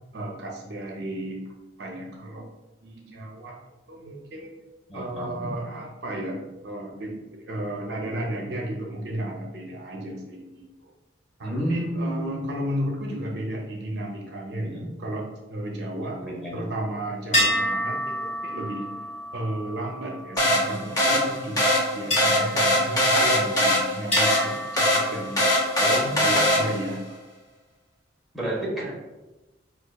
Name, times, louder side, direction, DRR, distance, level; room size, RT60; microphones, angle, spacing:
voice 1, 0.1-1.4 1.8-2.5 2.8-3.6 3.9-4.5 4.9-10.9 11.4-16.2 16.5-18.9 19.3-25.5 25.8-27.2, right 1 dB, 60° right, 0 dB, 0.5 m, -33 dB
voice 2, 4.9-5.6 11.4-12.4 14.6-14.9 16.2-16.6 25.8-26.3 28.3-29.0, equal, ahead, -7 dB, 1.0 m, -31 dB
sound 1, 17.3-21.0 22.1-23.6 24.1-25.8, equal, 35° left, 1.4 m, -30 dB
sound 2, 20.4-27.0, left 1 dB, 20° left, 0.6 m, -22 dB
5.0 x 2.3 x 2.2 m, 1.1 s
head